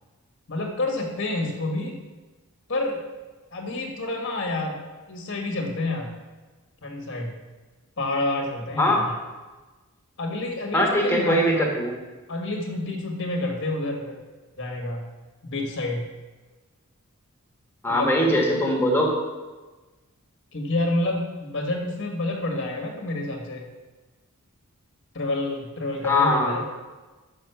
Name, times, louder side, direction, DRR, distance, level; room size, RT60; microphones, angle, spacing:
voice 1, 0.5-2.0 2.7-3.0 3.5-6.1 6.8-7.3 8.0-9.1 10.2-11.7 12.3-14.2 14.6-15.1 15.4-16.0 17.9-18.3 20.5-23.7 25.1-26.6, left 2 dB, 55° left, 2 dB, 1.5 m, -28 dB
voice 2, 10.7-11.9 17.8-19.1 26.0-26.5, left 1 dB, 10° left, -1 dB, 1.5 m, -21 dB
6.3 x 6.2 x 5.8 m, 1.2 s
head